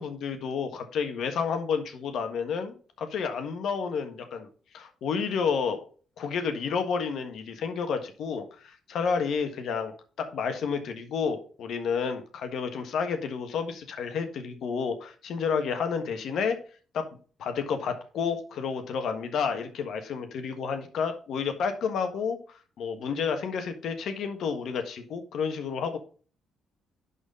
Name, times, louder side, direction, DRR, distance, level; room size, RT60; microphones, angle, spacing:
voice 1, 0.0-4.5 4.7-5.8 6.2-16.6 16.9-17.0 17.4-22.4 22.8-26.0, left 6 dB, 70° left, 6 dB, 1.4 m, -30 dB
11.0 x 4.2 x 3.7 m, 0.39 s
cardioid pair, 90°, 0 cm